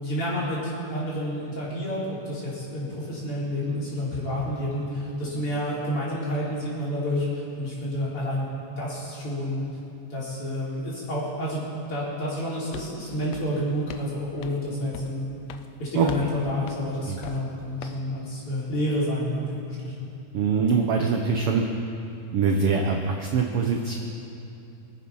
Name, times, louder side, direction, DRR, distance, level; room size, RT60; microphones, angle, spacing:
voice 1, 0.0-8.4 8.8-9.6 10.1-11.6 11.9-15.2 15.8-19.9, equal, 45° left, -7 dB, 4.8 m, -29 dB
sound 1, 12.4-12.5 12.7-13.0 13.3-14.1 14.4-14.6 14.9-15.2 15.5-15.7 16.1-16.3 16.7-16.9 17.2-17.5 17.8-18.0, left 10 dB, 75° left, 1.6 m, -40 dB
voice 2, 20.3-21.6 22.3-23.9, right 5 dB, 70° right, 2 dB, 1.4 m, -23 dB
25.0 x 9.1 x 5.6 m, 2.8 s
omnidirectional pair, 3.6 m